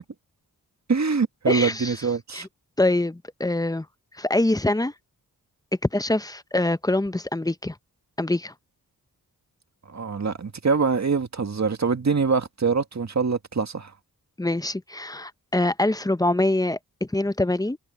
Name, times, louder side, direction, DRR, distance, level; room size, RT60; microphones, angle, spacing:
voice 1, 0.9-2.5 9.9-13.9, right 5 dB, 45° right, 1.9 m, -24 dB
voice 2, 1.5-1.9 2.3-2.5 2.8-3.9 4.2-4.9 5.9-7.7 8.2-8.5 14.4-17.8, left 2 dB, 10° left, 0.8 m, -24 dB
open air
cardioid pair, 55°, 38 cm